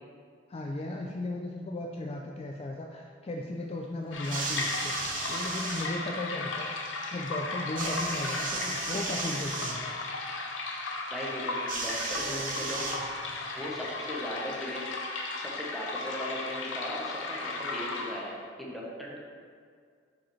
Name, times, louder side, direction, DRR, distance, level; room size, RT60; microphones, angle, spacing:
voice 1, 0.5-6.7 7.1-9.9, left 2 dB, 30° left, 0 dB, 0.4 m, -36 dB
sound 1, 4.1-18.4, left 3 dB, 85° left, 0.7 m, -35 dB
sound 2, 4.2-5.9 7.7-9.8 11.7-13.4 14.3-14.4, right 4 dB, 45° right, 0.7 m, -35 dB
voice 2, 11.1-12.9 13.5-14.9 15.4-19.2, equal, ahead, -4 dB, 1.0 m, -38 dB
7.2 x 4.8 x 3.2 m, 2.1 s
head